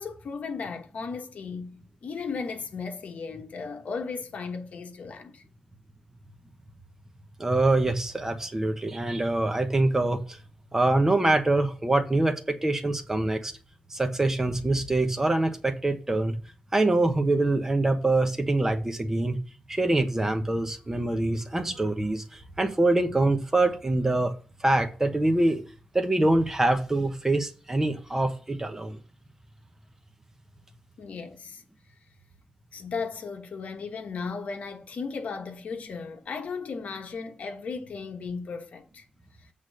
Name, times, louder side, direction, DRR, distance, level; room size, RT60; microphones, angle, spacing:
voice 1, 0.0-5.4 31.0-31.6 32.7-39.0, left 5 dB, 65° left, 1.2 m, -36 dB
voice 2, 7.4-10.4 10.7-13.5 13.9-16.4 16.7-19.4 19.7-24.3 24.6-25.6 25.9-29.0, right 2 dB, 15° right, 1.1 m, -24 dB
8.2 x 3.7 x 6.4 m
wide cardioid pair, 130°, 3 cm